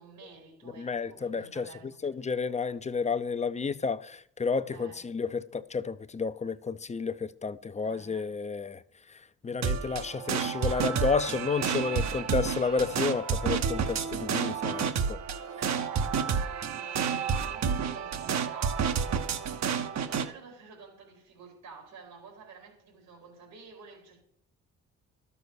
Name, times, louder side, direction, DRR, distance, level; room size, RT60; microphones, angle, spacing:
voice 1, 0.0-2.3 4.7-5.0 7.8-8.3 11.9-12.3 15.6-24.2, right 5 dB, 85° right, 4.0 m, -50 dB
voice 2, 0.8-1.7 2.0-8.8 9.1-15.2, left 5 dB, 25° left, 0.6 m, -31 dB
sound 1, 9.6-20.3, right 6 dB, 65° right, 1.1 m, -30 dB
12.5 x 6.9 x 6.4 m
cardioid pair, 90°, 30 cm